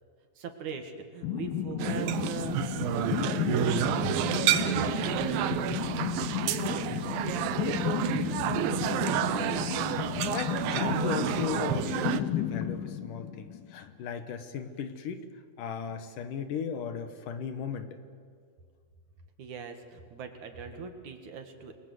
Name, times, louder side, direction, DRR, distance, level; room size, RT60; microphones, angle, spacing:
voice 1, 0.4-6.7 19.4-21.8, right 5 dB, 60° right, 6 dB, 3.1 m, -41 dB
sound 1, 1.2-13.9, left 10 dB, 85° left, 3.0 m, -33 dB
sound 2, 1.8-12.2, right 12 dB, 85° right, 2.7 m, -30 dB
voice 2, 10.3-15.2 15.6-17.9, left 7 dB, 70° left, 9 dB, 2.8 m, -36 dB
28.5 x 22.0 x 7.8 m, 2.1 s
omnidirectional pair, 4.0 m